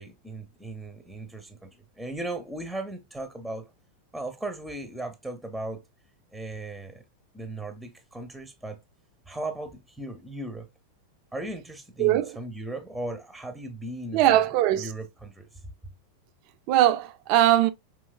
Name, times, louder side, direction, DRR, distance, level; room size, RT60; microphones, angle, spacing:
voice 1, 0.0-1.7 2.0-3.7 4.1-5.8 6.3-7.0 7.3-8.8 9.3-10.7 11.3-14.3 14.8-15.5, right 2 dB, ahead, 0.6 m, -37 dB
voice 2, 12.0-12.4 14.1-14.9 16.7-17.7, right 13 dB, 45° right, 0.4 m, -21 dB
4.4 x 3.0 x 2.2 m
figure-of-eight pair, 90°, 0 cm